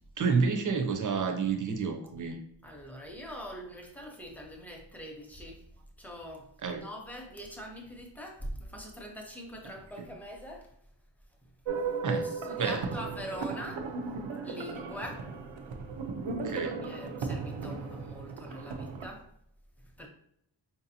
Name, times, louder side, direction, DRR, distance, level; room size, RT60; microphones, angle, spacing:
voice 1, 0.2-2.4 6.6-6.9 10.0-10.1 12.0-12.3 12.6-12.8 16.4-16.7, right 5 dB, 45° right, 4 dB, 0.6 m, -29 dB
voice 2, 2.6-5.6 6.0-10.7 12.1-13.9 14.4-15.2 16.5-19.3 20.0-20.1, equal, 5° left, 1 dB, 0.6 m, -43 dB
sound 1, 11.7-19.1, right 4 dB, 90° right, 0.6 m, -36 dB
4.6 x 2.6 x 2.7 m, 0.74 s
wide cardioid pair, 135°, 44 cm